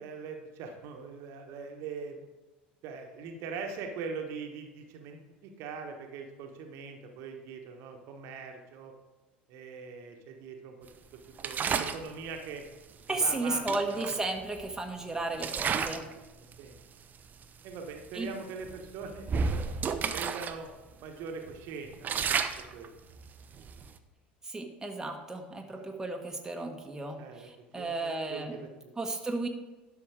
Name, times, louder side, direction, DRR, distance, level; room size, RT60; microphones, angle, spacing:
voice 1, 0.0-2.2 2.8-8.9 9.5-10.9 11.4-12.6 13.1-14.1 16.0-16.8 17.6-19.6 20.1-20.7 21.0-22.4 22.7-22.9 25.7-25.9 27.2-27.5 27.8-28.9, right 5 dB, 55° right, 4 dB, 1.3 m, -42 dB
sound 1, 11.4-12.1 13.2-13.3 13.7-14.9 15.3-16.1 16.5-16.8 17.4-17.5 17.9-18.1 18.6-20.6 20.9-21.0 21.5-24.0, right 6 dB, 30° right, 0.7 m, -32 dB
voice 2, 13.1-16.1 18.1-18.3 24.4-28.6 29.0-29.5, right 2 dB, 10° right, 2 dB, 1.3 m, -34 dB
12.0 x 5.8 x 4.9 m, 1.1 s
figure-of-eight pair, 70°, 5 cm